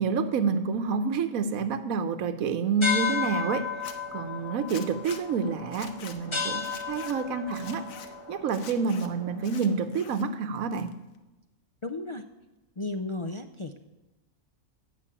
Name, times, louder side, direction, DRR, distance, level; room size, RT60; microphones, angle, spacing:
voice 1, 0.0-3.7 4.1-7.8 8.3-10.9, right 5 dB, 80° right, 9 dB, 1.3 m, -28 dB
sound 1, 2.8-9.7, left 5 dB, 20° left, 1.6 m, -34 dB
Zipper (clothing), 3.7-3.9 4.7-5.2 5.7-6.2 6.6-7.1 7.5-8.1 8.5-9.1 9.4-10.2 10.5-11.2, left 7 dB, 75° left, 1.4 m, -45 dB
voice 2, 11.8-12.3 12.8-13.8, left 2 dB, 40° left, 5 dB, 0.4 m, -34 dB
15.5 x 6.2 x 8.6 m, 1.0 s
omnidirectional pair, 1.5 m